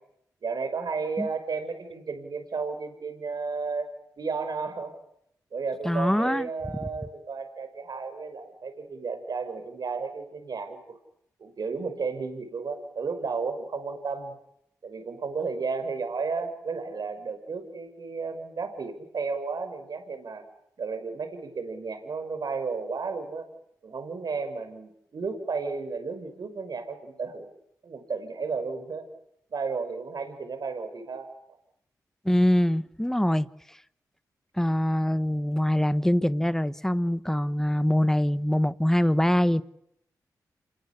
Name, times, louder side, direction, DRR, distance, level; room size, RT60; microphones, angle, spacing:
voice 1, 0.4-4.9 5.5-11.0 11.4-14.3 14.8-20.4 20.8-23.5 23.8-27.5 27.8-29.1 29.5-31.3, right 4 dB, 65° right, 5.9 m, -33 dB
voice 2, 5.8-6.5 32.2-33.5 34.6-39.6, left 1 dB, 5° left, 1.3 m, -24 dB
27.5 x 22.5 x 8.5 m
supercardioid pair, 45°, 7 cm